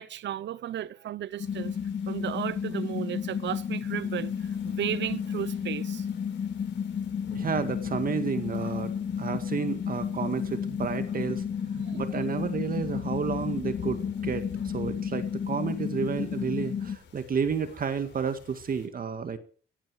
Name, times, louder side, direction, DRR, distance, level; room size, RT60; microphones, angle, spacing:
voice 1, 0.0-1.7 2.1-4.3 4.6-6.0 11.7-12.1, right 11 dB, 65° right, 0.9 m, -34 dB
sound 1, 1.4-18.9, left 7 dB, 65° left, 5.6 m, -50 dB
sound 2, 1.4-17.0, left 7 dB, 35° left, 1.0 m, -32 dB
voice 2, 7.3-8.9 9.2-11.4 11.9-19.4, right 6 dB, 45° right, 2.0 m, -31 dB
17.0 x 14.5 x 4.9 m
cardioid pair, 90°, 20 cm